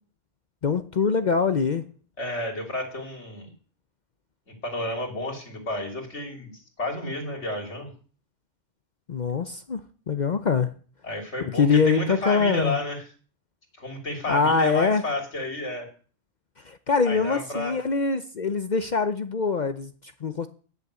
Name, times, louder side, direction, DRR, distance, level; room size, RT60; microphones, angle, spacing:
voice 1, 0.6-1.9 9.1-9.8 10.1-10.7 11.4-12.8 14.3-15.0 16.6-20.5, left 5 dB, 45° left, 0.7 m, -24 dB
voice 2, 2.2-3.5 4.5-6.5 6.8-7.9 11.0-13.0 13.8-15.9 17.0-17.8, left 1 dB, 70° left, 3.4 m, -31 dB
11.0 x 6.9 x 8.1 m
omnidirectional pair, 1.2 m